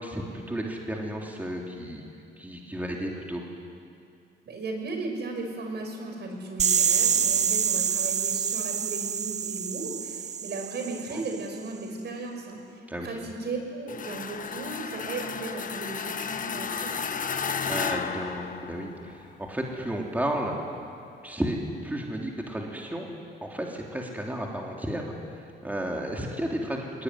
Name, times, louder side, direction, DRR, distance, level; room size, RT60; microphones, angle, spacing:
voice 1, 0.0-2.0 2.4-3.4 11.1-11.2 12.9-13.1 17.6-20.6 21.2-23.1 23.4-25.1 25.3-27.0, right 1 dB, 10° right, -1 dB, 3.3 m, -33 dB
voice 2, 4.5-17.0, right 3 dB, 60° right, 3 dB, 5.5 m, -36 dB
sound 1, 6.6-11.4, right 7 dB, 35° right, 0.5 m, -26 dB
sound 2, 13.9-19.1, left 6 dB, 40° left, 1.4 m, -33 dB
22.0 x 19.5 x 9.9 m, 2.4 s
cardioid pair, 90°, 20 cm